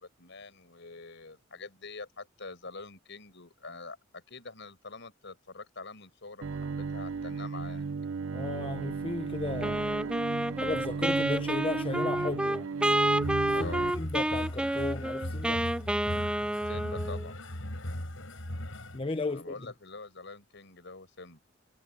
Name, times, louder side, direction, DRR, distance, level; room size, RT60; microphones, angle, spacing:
voice 1, 0.0-7.9 13.5-14.0 16.6-17.4 19.3-21.4, left 3 dB, 65° left, 6.0 m, -45 dB
Bowed string instrument, 6.4-13.9, right 5 dB, 70° right, 0.5 m, -35 dB
voice 2, 8.3-9.8 10.6-12.7 13.6-15.7 18.9-19.6, left 3 dB, 25° left, 0.8 m, -35 dB
Wind instrument woodwind instrument, 9.6-17.3, right 1 dB, 5° right, 0.4 m, -29 dB
sound 1, 13.2-19.0, left 1 dB, 90° left, 5.4 m, -38 dB
head